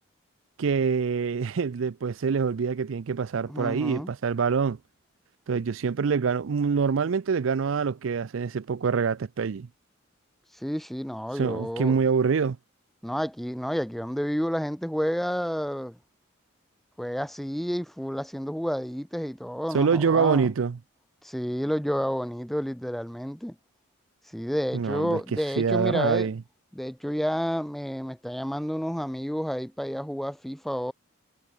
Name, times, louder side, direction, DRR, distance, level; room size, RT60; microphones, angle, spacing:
voice 1, 0.6-4.8 5.5-9.7 11.4-12.6 19.7-20.8 24.7-25.2 25.6-26.4, right 5 dB, 70° right, 0.4 m, -25 dB
voice 2, 3.5-4.1 10.5-12.0 13.0-16.0 17.0-20.5 21.2-23.6 24.3-26.3 26.7-30.9, equal, ahead, 0.4 m, -30 dB
head